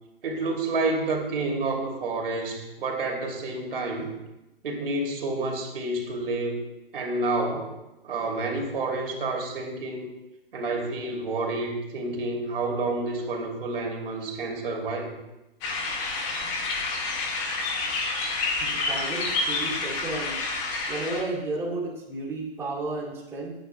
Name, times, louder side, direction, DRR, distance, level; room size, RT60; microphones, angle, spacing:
voice 1, 0.2-4.1 4.6-6.6 6.9-7.7 8.0-10.1 10.5-15.1, right 2 dB, 65° right, 1 dB, 2.8 m, -29 dB
sound 1, 15.6-21.2, left 3 dB, 25° left, 1.8 m, -29 dB
voice 2, 18.6-20.4 20.9-23.5, right 2 dB, 10° right, -7 dB, 2.5 m, -32 dB
20.0 x 9.2 x 2.3 m, 0.96 s
hypercardioid pair, 150°, 30 cm